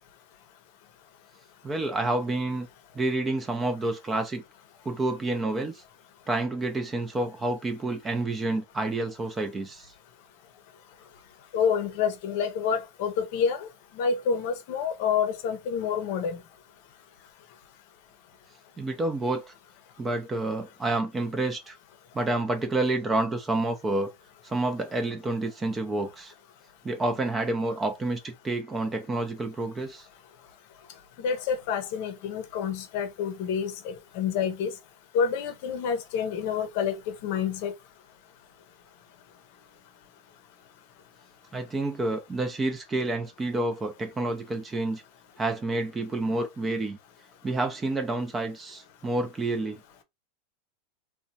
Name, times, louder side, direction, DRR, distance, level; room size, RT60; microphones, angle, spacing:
voice 1, 1.6-2.7 2.9-4.4 4.9-5.8 6.3-9.9 18.8-19.5 20.0-21.8 22.1-24.1 24.4-26.3 26.8-30.1 41.5-45.0 45.4-47.0 47.4-49.8, right 2 dB, 15° right, 0.5 m, -29 dB
voice 2, 11.5-13.7 14.0-16.4 31.2-34.7 35.1-37.7, left 6 dB, 60° left, 0.6 m, -28 dB
2.9 x 2.1 x 2.7 m
supercardioid pair, 120°, 0 cm